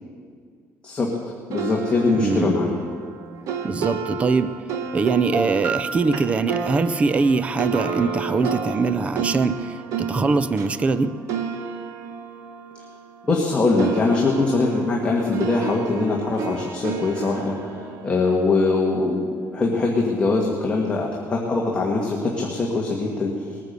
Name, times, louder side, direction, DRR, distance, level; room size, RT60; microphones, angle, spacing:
voice 1, 0.8-2.8 13.2-23.6, left 3 dB, 20° left, -2 dB, 1.7 m, -22 dB
sound 1, 1.5-13.5 13.8-19.0, right 6 dB, 65° right, 1.3 m, -31 dB
voice 2, 2.1-2.5 3.6-4.5 4.9-11.1, right 4 dB, 20° right, 13 dB, 0.5 m, -22 dB
20.5 x 9.5 x 6.7 m, 2.1 s
cardioid pair, 165°, 6 cm